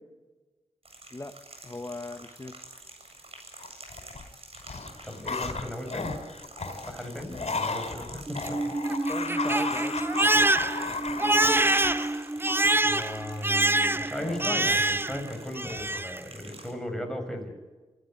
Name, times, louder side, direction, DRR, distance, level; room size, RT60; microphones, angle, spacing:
sound 1, 0.8-16.7, right 2 dB, 55° right, 7.9 m, -49 dB
voice 1, 1.6-2.6 8.9-9.9, left 2 dB, 25° left, 7 dB, 1.5 m, -39 dB
sound 2, 3.6-4.2 4.5-13.2 14.2-15.3 15.6-16.0, left 3 dB, 60° left, 4.5 m, -36 dB
voice 2, 5.0-6.2 6.9-8.6 12.8-17.5, left 1 dB, 5° left, 3 dB, 6.9 m, -36 dB
Crying sobbing, 8.3-15.3 15.6-16.2, right 2 dB, 20° right, 0.7 m, -25 dB
27.5 x 15.0 x 9.7 m, 1.3 s
cardioid pair, 65°, 12 cm